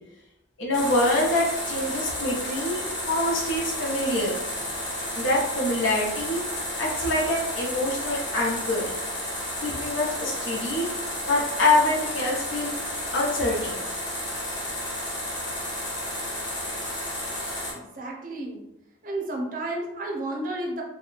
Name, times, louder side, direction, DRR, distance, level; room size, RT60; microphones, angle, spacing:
voice 1, 0.6-2.8 3.1-4.4 5.2-6.4 6.8-8.9 9.6-10.9 11.3-12.7 13.1-13.8, left 2 dB, 70° left, -3 dB, 0.9 m, -25 dB
sound 1, 0.7-17.7, left 1 dB, 20° left, 1.0 m, -32 dB
voice 2, 17.7-18.6 19.0-20.8, right 1 dB, 40° right, 0 dB, 0.6 m, -32 dB
2.9 x 2.2 x 3.9 m, 0.92 s
head